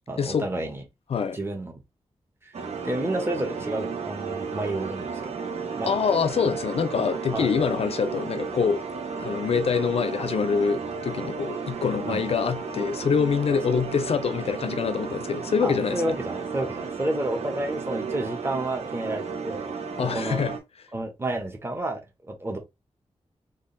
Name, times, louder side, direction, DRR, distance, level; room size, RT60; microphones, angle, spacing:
voice 1, 0.1-0.8 1.3-1.7 2.4-2.5 2.8-5.4 5.8-5.9 7.3-7.6 12.1-12.2 15.6-19.7 20.0-20.4 20.9-22.6, right 1 dB, 20° right, 1.1 m, -30 dB
sound 1, 2.5-20.6, right 5 dB, 85° right, 0.9 m, -33 dB
voice 2, 5.8-8.8 9.2-16.1 20.0-20.5, left 6 dB, 65° left, 0.5 m, -25 dB
3.6 x 2.5 x 3.9 m
wide cardioid pair, 160°, 11 cm